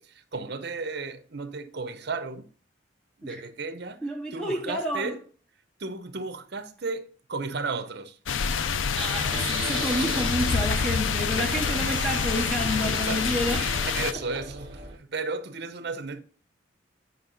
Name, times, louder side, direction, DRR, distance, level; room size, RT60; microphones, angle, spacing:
voice 1, 0.0-2.5 3.2-4.0 4.3-5.1 5.8-8.2 11.3-12.0 12.8-13.2 13.5-16.2, right 4 dB, 60° right, 0.8 m, -34 dB
voice 2, 4.0-5.2 8.9-13.7 14.1-14.4, equal, 5° left, 0.8 m, -30 dB
sound 1, 8.3-14.1, left 6 dB, 90° left, 0.5 m, -27 dB
sound 2, 9.1-15.0, right 2 dB, 25° right, 1.7 m, -37 dB
9.3 x 5.5 x 3.9 m
head